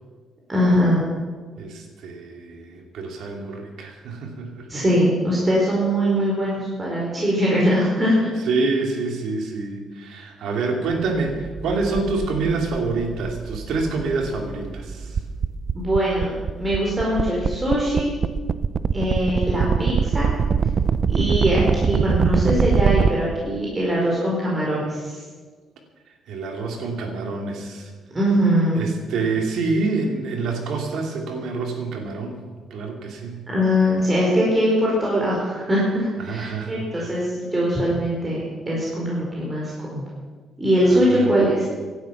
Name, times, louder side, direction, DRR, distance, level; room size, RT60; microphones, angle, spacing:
voice 1, 0.5-1.0 4.7-8.3 15.7-16.3 16.6-18.1 18.9-20.3 21.1-25.2 28.1-28.8 33.5-40.0 40.6-41.6, equal, 25° right, -4 dB, 4.7 m, -21 dB
voice 2, 1.6-4.8 8.5-15.2 26.3-27.9 28.7-32.4 32.7-33.4 36.2-37.2 40.8-41.4, right 3 dB, 75° right, 2 dB, 3.0 m, -27 dB
sound 1, 11.1-23.1, right 6 dB, 45° right, 0.6 m, -23 dB
16.5 x 11.5 x 5.9 m, 1.5 s
cardioid pair, 90°, 0 cm